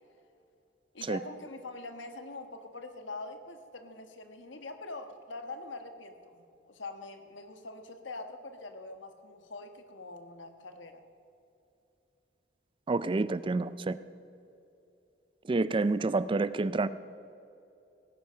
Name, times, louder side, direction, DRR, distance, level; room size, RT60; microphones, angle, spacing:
voice 1, 0.9-11.0, left 3 dB, 80° left, 7 dB, 1.3 m, -44 dB
voice 2, 12.9-14.0 15.5-16.9, right 3 dB, 25° right, 15 dB, 0.4 m, -28 dB
18.0 x 10.5 x 5.7 m, 2.7 s
head